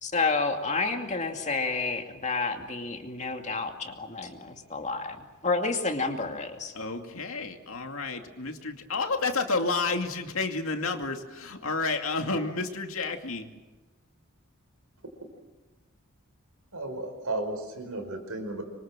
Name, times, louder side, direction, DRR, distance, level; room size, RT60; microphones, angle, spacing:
voice 1, 0.0-6.7, left 3 dB, 30° left, 4 dB, 2.5 m, -30 dB
voice 2, 6.7-13.5, left 3 dB, 65° left, 5 dB, 2.4 m, -30 dB
voice 3, 16.7-18.6, right 2 dB, 80° right, 5 dB, 5.2 m, -34 dB
26.0 x 24.0 x 7.5 m, 1.2 s
head